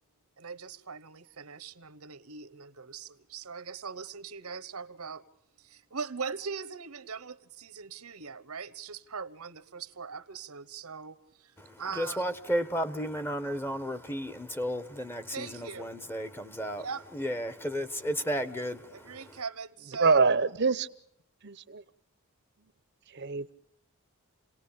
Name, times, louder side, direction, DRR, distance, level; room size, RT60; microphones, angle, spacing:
voice 1, 0.4-5.2 5.6-12.3 15.3-15.9 16.8-17.0 18.9-20.2, right 5 dB, 80° right, 1.1 m, -40 dB
voice 2, 11.6-16.9 17.1-19.4, equal, 10° left, 1.1 m, -33 dB
voice 3, 20.0-20.9 21.4-21.8 23.2-23.5, right 4 dB, 50° right, 0.9 m, -25 dB
29.0 x 18.5 x 8.7 m
head